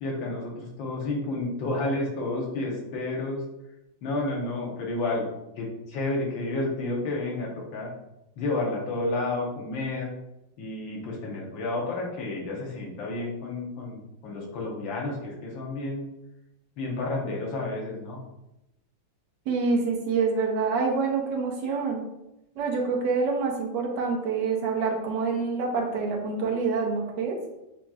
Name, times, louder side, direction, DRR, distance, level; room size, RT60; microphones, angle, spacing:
voice 1, 0.0-3.4 4.0-5.2 5.6-7.9 8.4-10.1 10.6-16.1 16.8-18.2, left 2 dB, 75° left, -1 dB, 1.6 m, -31 dB
voice 2, 19.5-22.0 22.6-27.4, right 4 dB, 65° right, 0 dB, 1.3 m, -26 dB
6.1 x 2.9 x 2.3 m, 0.90 s
omnidirectional pair, 2.1 m